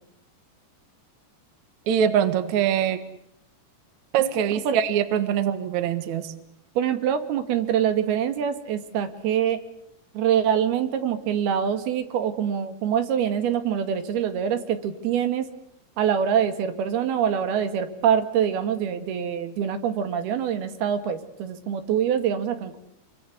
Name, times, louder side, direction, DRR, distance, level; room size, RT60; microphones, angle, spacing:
voice 1, 1.9-3.0 4.1-6.3, right 9 dB, 60° right, 11 dB, 2.6 m, -23 dB
voice 2, 6.8-9.6 10.1-15.5 16.0-22.8, right 8 dB, 85° right, 9 dB, 3.8 m, -25 dB
28.0 x 23.5 x 8.2 m, 0.78 s
omnidirectional pair, 4.3 m